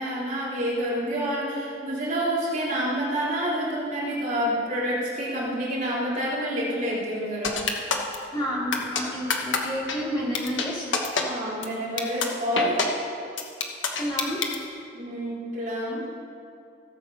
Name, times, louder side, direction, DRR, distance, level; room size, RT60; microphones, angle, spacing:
voice 1, 0.0-7.6 11.2-12.8 14.9-16.1, equal, 40° right, -7 dB, 3.1 m, -28 dB
sound 1, 7.4-8.2 8.7-9.0 9.3-9.6 9.9-10.0 10.3-10.7 10.9-11.2 11.6-11.7 12.0-12.3 12.6-12.9 13.4-14.6, left 5 dB, 80° left, 1.2 m, -25 dB
voice 2, 8.3-11.0 14.0-14.4, equal, 25° left, -6 dB, 2.7 m, -30 dB
17.0 x 7.2 x 5.3 m, 2.5 s
head